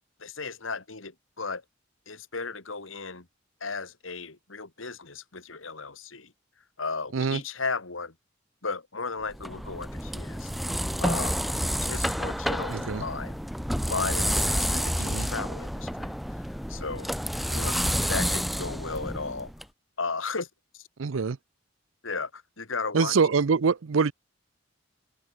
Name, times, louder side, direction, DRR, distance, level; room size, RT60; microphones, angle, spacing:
voice 1, 0.2-1.6 2.1-3.3 3.6-6.3 6.8-8.1 8.6-10.5 11.0-11.4 11.8-13.4 13.9-17.1 17.5-19.5 20.0-20.5 22.0-23.1, left 4 dB, 85° left, 2.4 m, -35 dB
sound 1, 9.3-19.6, equal, ahead, 0.6 m, -29 dB
voice 2, 12.7-13.0 15.0-15.3 21.0-21.4 22.9-24.1, right 5 dB, 90° right, 0.6 m, -24 dB
head